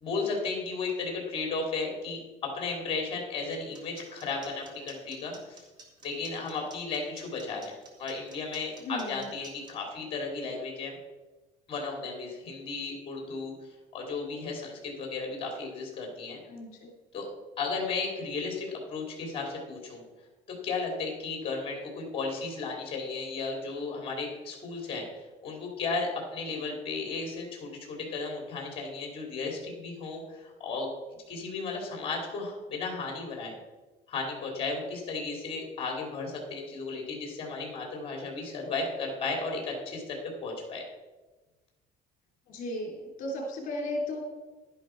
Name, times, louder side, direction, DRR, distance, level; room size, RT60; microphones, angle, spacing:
voice 1, 0.0-5.6 6.0-11.0 11.7-13.5 13.9-16.4 17.1-17.3 17.6-20.0 20.6-30.9 31.3-33.5 34.1-40.8, left 4 dB, 35° left, 0 dB, 2.8 m, -34 dB
sound 1, 3.5-9.7, right 2 dB, 25° right, 1.9 m, -51 dB
voice 2, 8.8-9.3 16.5-16.9 42.5-44.2, left 1 dB, 50° left, -1 dB, 3.2 m, -35 dB
11.0 x 10.5 x 4.5 m, 1.2 s
cardioid pair, 175°, 17 cm